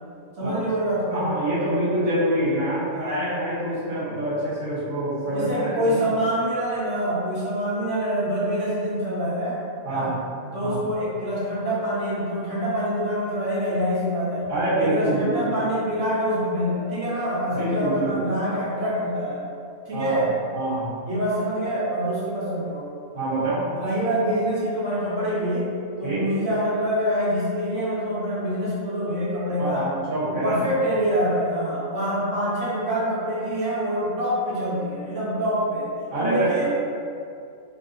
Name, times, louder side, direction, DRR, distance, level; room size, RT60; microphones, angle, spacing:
voice 1, 0.4-1.3 2.9-3.2 3.8-3.9 5.3-9.6 9.9-10.1 10.5-14.4 14.8-19.4 19.8-20.3 21.1-22.8 23.7-25.6 26.0-29.9 30.2-35.9 36.2-36.7, equal, 60° right, -9 dB, 1.5 m, -25 dB
voice 2, 1.1-5.8 9.8-10.2 10.6-10.9 14.5-15.5 17.5-18.3 19.9-20.2 20.5-20.9 23.1-23.7 26.0-26.2 29.6-30.6 36.1-36.7, right 1 dB, 85° right, -10 dB, 1.7 m, -26 dB
4.1 x 2.2 x 3.8 m, 2.4 s
omnidirectional pair, 1.4 m